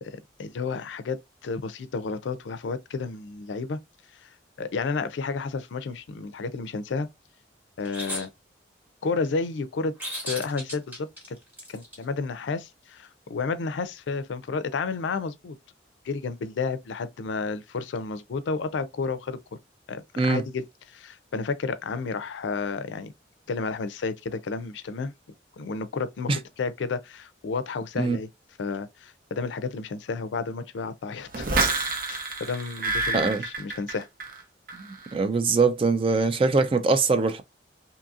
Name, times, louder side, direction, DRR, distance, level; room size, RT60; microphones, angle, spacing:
voice 1, 0.0-3.8 4.2-4.3 4.6-7.1 7.8-8.3 9.0-9.9 10.2-11.4 11.7-15.6 16.0-19.4 19.9-23.1 23.5-25.1 25.6-28.3 28.6-31.5 32.1-34.1, left 4 dB, 85° left, 0.4 m, -31 dB
sound 1, 7.8-8.3 10.0-12.0, equal, 10° right, 1.0 m, -35 dB
sound 2, 31.3-34.4 34.7-35.1, right 3 dB, 50° right, 0.7 m, -28 dB
voice 2, 33.1-33.4 34.8-37.4, right 4 dB, 30° right, 0.3 m, -23 dB
2.7 x 2.6 x 2.3 m
head